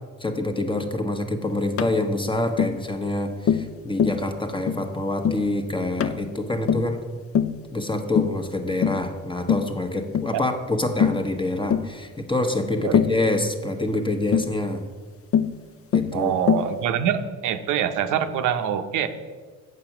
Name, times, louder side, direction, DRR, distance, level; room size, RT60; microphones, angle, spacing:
voice 1, 0.2-7.0 7.7-14.8 15.9-16.3, left 2 dB, 15° left, 6 dB, 1.0 m, -26 dB
Tap, 1.8-2.0 2.6-2.8 3.5-3.7 4.0-4.2 4.7-4.9 5.2-5.5 6.0-6.2 6.7-6.9 7.3-7.6 8.2-8.4 8.8-9.1 9.5-9.7 10.1-10.3 11.0-11.3 11.7-11.9 12.9-13.2 14.3-14.5 15.3-15.6 15.9-16.2 16.5-16.7, left 8 dB, 50° left, 0.5 m, -22 dB
voice 2, 16.1-19.1, right 9 dB, 90° right, 8 dB, 0.7 m, -24 dB
8.1 x 5.9 x 5.9 m, 1.5 s
cardioid pair, 90°, 30 cm